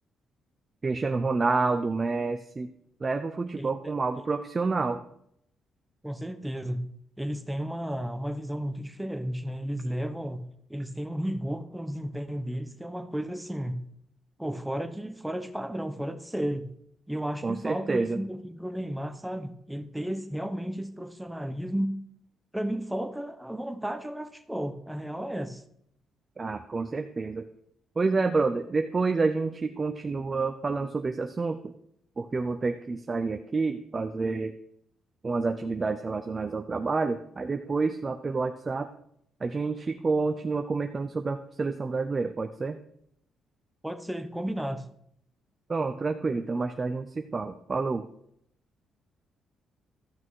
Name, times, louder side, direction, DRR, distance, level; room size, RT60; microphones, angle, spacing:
voice 1, 0.8-2.7 3.0-5.0 17.4-18.2 26.4-27.5 28.0-31.6 32.2-34.6 35.2-38.9 39.4-42.8 45.7-48.1, right 4 dB, 30° right, 0.6 m, -28 dB
voice 2, 3.6-4.2 6.0-13.9 14.4-16.7 17.1-22.0 22.5-25.6 43.8-44.9, equal, 5° right, 0.9 m, -33 dB
13.0 x 6.1 x 4.7 m
cardioid pair, 90°, 0 cm